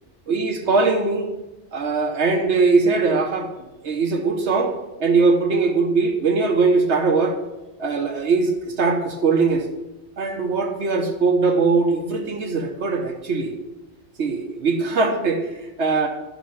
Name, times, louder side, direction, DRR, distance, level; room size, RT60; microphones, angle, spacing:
voice 1, 0.3-1.3 1.7-3.5 3.8-7.4 7.8-9.7 10.2-13.5 14.2-16.1, right 4 dB, 75° right, 4 dB, 1.3 m, -21 dB
10.5 x 6.3 x 5.7 m, 1.0 s
omnidirectional pair, 1.2 m